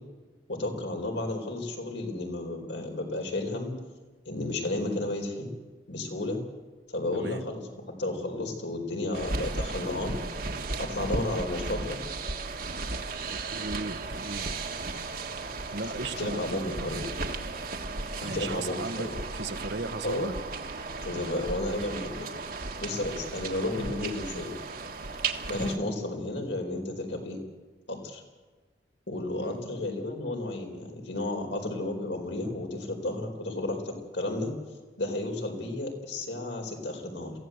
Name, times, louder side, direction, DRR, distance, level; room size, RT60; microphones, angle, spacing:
voice 1, 0.5-3.7 4.3-5.5 5.9-6.4 6.9-7.7 8.0-10.2 10.8-12.0 16.2-17.0 18.2-19.1 20.0-20.3 21.0-22.4 22.8-24.5 25.5-27.4 27.9-28.2 29.1-34.5 35.0-37.3, left 2 dB, 75° left, 3 dB, 4.5 m, -32 dB
voice 2, 7.1-7.4 13.3-14.5 15.7-17.1 18.2-20.3 29.4-29.6, right 2 dB, 70° right, 10 dB, 1.2 m, -36 dB
sound 1, 9.1-25.8, right 3 dB, 50° right, 1.6 m, -35 dB
22.5 x 16.0 x 8.1 m, 1.3 s
head